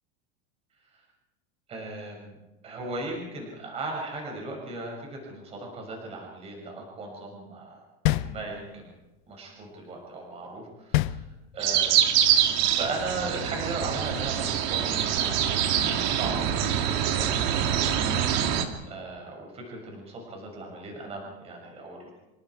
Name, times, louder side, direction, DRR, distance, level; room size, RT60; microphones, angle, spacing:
voice 1, 1.7-2.4 2.6-8.9 9.3-11.2 11.5-12.1 12.7-15.5 15.8-18.6 18.8-22.2, right 2 dB, 20° right, 0 dB, 6.6 m, -37 dB
sound 1, 8.1-9.0 10.9-11.9, left 16 dB, 55° left, 0.8 m, -27 dB
sound 2, 11.6-18.7, right 9 dB, 50° right, 2.5 m, -25 dB
27.5 x 24.0 x 4.8 m, 1.0 s
supercardioid pair, 175°, 29 cm